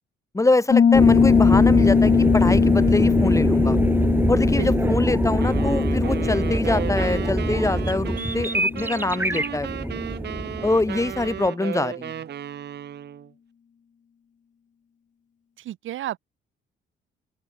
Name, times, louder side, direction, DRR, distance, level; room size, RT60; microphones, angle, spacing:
voice 1, 0.3-3.8 4.3-9.9 10.6-12.2, left 2 dB, 15° left, 2.5 m, -24 dB
Piano, 0.7-9.2, left 7 dB, 40° left, 1.1 m, -21 dB
sound 1, 0.9-11.5, right 1 dB, 10° right, 3.9 m, -24 dB
voice 2, 4.3-5.0 15.6-16.2, right 13 dB, 80° right, 4.4 m, -33 dB
sound 2, 5.4-13.3, right 9 dB, 60° right, 1.8 m, -35 dB
open air
cardioid pair, 90°, 20 cm